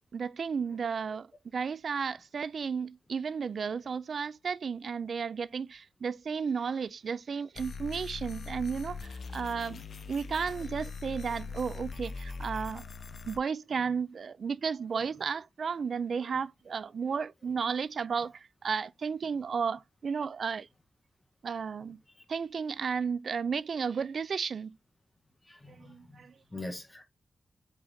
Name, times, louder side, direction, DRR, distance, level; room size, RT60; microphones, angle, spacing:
voice 1, 0.1-1.3 1.5-9.8 10.1-12.8 13.3-20.7 21.4-22.0 22.3-24.8 25.8-26.3, right 6 dB, 65° right, 0.4 m, -33 dB
sound 1, 7.6-13.4, left 4 dB, 65° left, 0.7 m, -41 dB
voice 2, 25.4-26.2 26.5-27.0, left 2 dB, 20° left, 1.7 m, -43 dB
8.0 x 4.0 x 3.5 m
wide cardioid pair, 115°, 0 cm